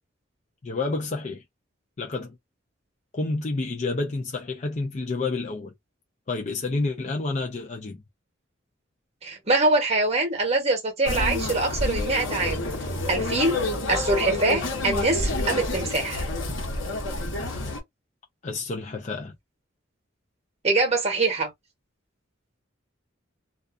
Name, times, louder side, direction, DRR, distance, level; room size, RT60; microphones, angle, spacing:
voice 1, 0.6-1.4 2.0-2.4 3.1-5.7 6.3-8.0 18.4-19.3, left 3 dB, 40° left, 0.5 m, -29 dB
voice 2, 9.2-12.7 13.1-13.6 13.9-16.2 20.6-21.5, right 2 dB, 35° right, 1.0 m, -24 dB
sound 1, 11.0-17.8, left 2 dB, 70° left, 1.0 m, -28 dB
2.4 x 2.3 x 2.4 m
head